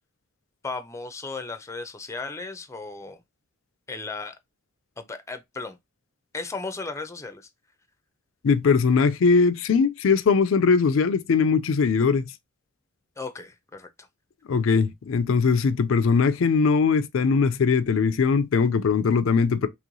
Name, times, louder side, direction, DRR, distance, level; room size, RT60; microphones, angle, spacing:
voice 1, 0.6-3.2 3.9-4.4 5.0-5.8 6.3-7.5 13.2-14.1, left 3 dB, 15° left, 0.5 m, -35 dB
voice 2, 8.4-12.2 14.5-19.7, left 5 dB, 75° left, 0.4 m, -20 dB
3.0 x 3.0 x 3.8 m
head